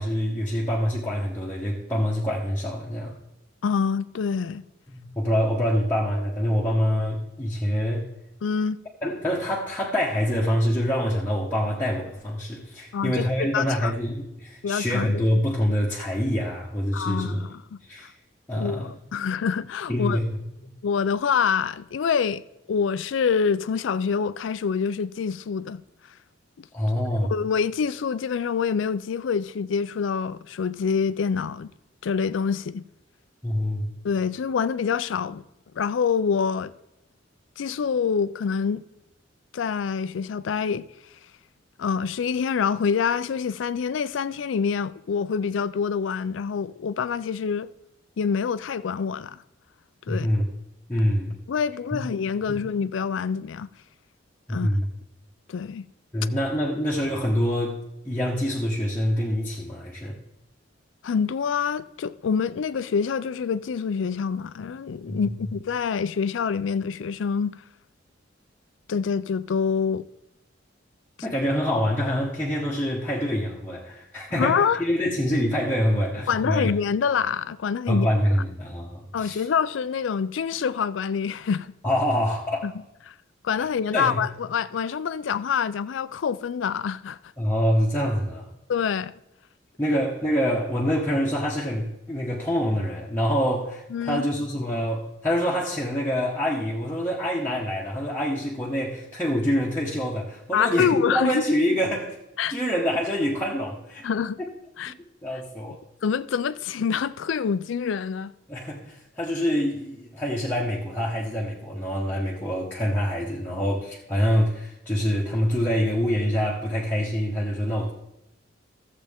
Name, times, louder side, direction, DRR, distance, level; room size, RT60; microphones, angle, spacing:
voice 1, 0.0-3.2 4.9-8.1 9.0-17.4 17.8-18.1 18.5-19.0 19.9-20.7 26.7-27.3 33.4-33.9 50.1-50.5 50.9-51.4 51.9-52.0 52.5-52.6 54.5-54.9 56.1-57.8 58.0-60.2 65.1-65.2 71.2-76.7 77.9-79.4 81.8-82.7 83.6-83.7 83.9-84.2 87.4-88.5 89.8-102.2 102.5-104.1 105.2-105.8 108.5-117.9, equal, 10° left, 1.0 m, -26 dB
voice 2, 3.6-4.6 8.4-8.8 12.9-13.9 14.6-15.2 16.9-17.8 18.5-20.2 20.8-22.4 22.7-25.8 26.6-26.7 27.3-31.7 32.0-32.8 34.0-35.4 35.7-36.7 37.6-38.8 39.5-40.9 41.8-47.7 48.2-49.4 50.1-50.3 51.5-53.7 54.5-54.7 55.5-55.9 61.0-67.6 68.9-70.1 74.4-74.8 76.3-78.1 79.1-81.7 82.6-82.7 83.1-83.2 83.4-87.2 88.7-89.1 93.9-94.3 100.5-101.4 102.4-102.6 104.0-104.4 104.8-104.9 105.7-105.8 106.0-108.3, left 6 dB, 80° left, 0.4 m, -26 dB
14.0 x 7.4 x 3.5 m
head